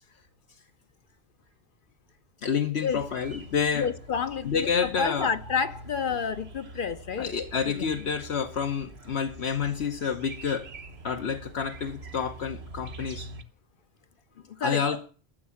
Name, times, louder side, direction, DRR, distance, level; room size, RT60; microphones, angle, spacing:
voice 1, 2.4-3.9 4.4-5.3 7.2-10.7 11.0-13.3 14.6-15.0, left 6 dB, 75° left, 1.3 m, -29 dB
sound 1, 2.9-13.4, right 2 dB, 75° right, 1.4 m, -45 dB
voice 2, 3.7-4.7 5.0-7.3 7.7-7.9 14.6-15.0, left 6 dB, 55° left, 0.8 m, -29 dB
13.5 x 7.5 x 7.0 m
omnidirectional pair, 1.1 m